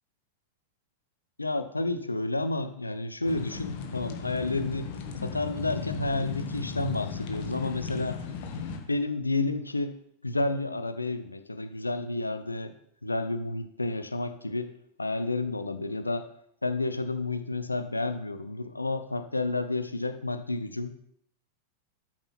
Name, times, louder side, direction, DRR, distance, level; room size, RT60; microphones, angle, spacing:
voice 1, 1.4-4.9 5.2-8.2 8.9-10.0 10.2-12.7 13.0-14.7 15.0-16.3 16.6-20.9, left 2 dB, 80° left, 11 dB, 0.7 m, -30 dB
sound 1, 3.2-8.8, left 6 dB, 50° left, 1.5 m, -36 dB
12.5 x 6.0 x 4.2 m, 0.72 s
figure-of-eight pair, 90°, 0 cm